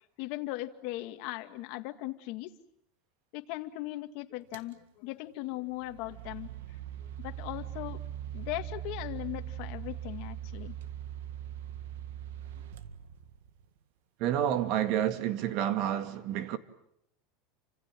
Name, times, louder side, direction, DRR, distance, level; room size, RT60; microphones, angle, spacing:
voice 1, 0.0-2.5 3.3-6.5 7.2-8.0 8.3-10.8, left 17 dB, 55° left, 2.1 m, -38 dB
sound 1, 4.5-4.7 5.6-13.7, right 11 dB, 90° right, 1.8 m, -41 dB
voice 2, 14.2-16.6, right 11 dB, 50° right, 2.0 m, -29 dB
29.5 x 26.0 x 7.6 m
supercardioid pair, 155°, 0 cm